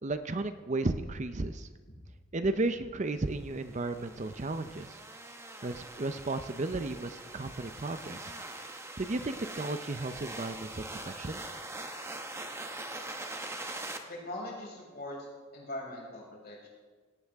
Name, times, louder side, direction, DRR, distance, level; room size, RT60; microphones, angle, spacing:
voice 1, 0.0-1.7 2.3-5.0 5.6-8.3 9.0-11.4, right 2 dB, 35° right, 10 dB, 0.6 m, -34 dB
sound 1, 3.5-14.0, right 2 dB, 15° right, 1.1 m, -43 dB
voice 2, 14.1-15.3 15.5-16.7, left 1 dB, 50° left, -3 dB, 5.9 m, -41 dB
18.0 x 17.0 x 3.5 m, 1.5 s
head